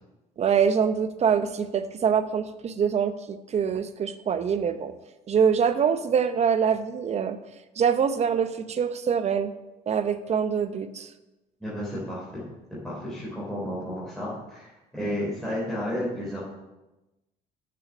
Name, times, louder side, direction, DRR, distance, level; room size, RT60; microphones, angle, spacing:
voice 1, 0.4-4.9 5.3-7.4 7.8-9.5 9.9-11.1, right 7 dB, 40° right, 11 dB, 0.7 m, -24 dB
voice 2, 11.6-12.4 12.8-16.4, equal, ahead, -8 dB, 3.2 m, -32 dB
6.8 x 6.6 x 6.1 m, 1.0 s
cardioid pair, 110°, 17 cm